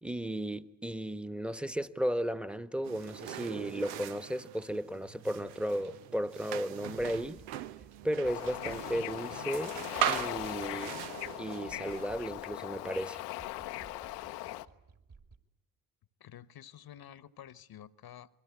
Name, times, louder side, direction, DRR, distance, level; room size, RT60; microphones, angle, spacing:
voice 1, 0.0-7.4 8.0-9.8 10.1-11.0 11.4-13.2, equal, ahead, 1.3 m, -35 dB
sound 1, 2.8-12.3, right 12 dB, 75° right, 0.9 m, -40 dB
sound 2, 7.0-15.4, right 4 dB, 40° right, 2.9 m, -57 dB
Bird / Ocean, 8.2-14.7, left 16 dB, 80° left, 0.9 m, -39 dB
voice 2, 16.2-18.3, left 10 dB, 50° left, 1.2 m, -50 dB
28.0 x 22.0 x 8.5 m
hypercardioid pair, 50°, 47 cm